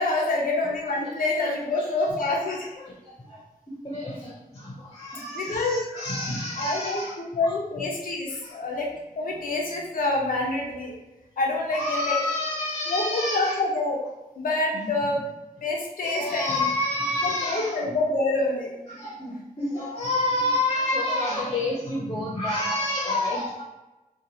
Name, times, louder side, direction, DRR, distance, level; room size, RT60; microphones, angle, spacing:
voice 1, 0.0-2.7 5.3-6.0 6.6-8.9 9.2-10.9 11.4-12.2 12.9-14.0 14.4-15.2 15.6-16.7 17.4-18.7, left 2 dB, 85° left, -2 dB, 0.5 m, -26 dB
voice 2, 1.4-1.9 2.8-7.1 7.4-7.6 8.3-8.6 11.7-13.6 14.7-14.9 16.0-17.9 18.9-23.6, left 1 dB, 30° left, -4 dB, 0.7 m, -29 dB
2.9 x 2.2 x 2.7 m, 1.0 s
wide cardioid pair, 75°, 14 cm